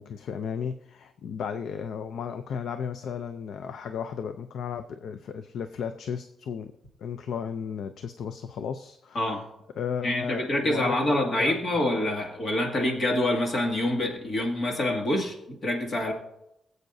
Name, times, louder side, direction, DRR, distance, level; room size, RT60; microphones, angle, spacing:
voice 1, 0.0-6.7 7.0-9.3 9.8-11.5, left 7 dB, 80° left, 9 dB, 0.5 m, -34 dB
voice 2, 10.0-15.4 15.6-16.1, left 1 dB, 45° left, 1 dB, 2.1 m, -26 dB
23.0 x 7.9 x 2.7 m, 0.83 s
wide cardioid pair, 150°, 0 cm